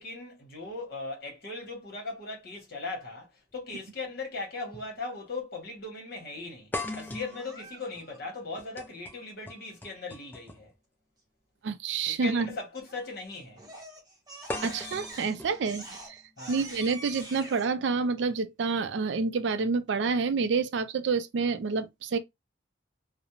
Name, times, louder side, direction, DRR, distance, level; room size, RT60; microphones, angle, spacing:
voice 1, 0.0-10.7 12.1-13.6 16.4-16.6, left 3 dB, 50° left, 1.0 m, -38 dB
sound 1, 3.5-3.6 4.7-4.9 5.3-5.4 6.7-10.8 11.9-12.1 14.5-16.5, left 2 dB, 10° left, 0.3 m, -40 dB
Crying sobbing, 7.2-8.2 12.9-13.2 13.6-17.7, right 1 dB, 20° right, 0.8 m, -45 dB
voice 2, 11.6-12.5 14.6-16.2 16.5-22.2, right 4 dB, 65° right, 0.4 m, -28 dB
2.4 x 2.0 x 3.0 m
head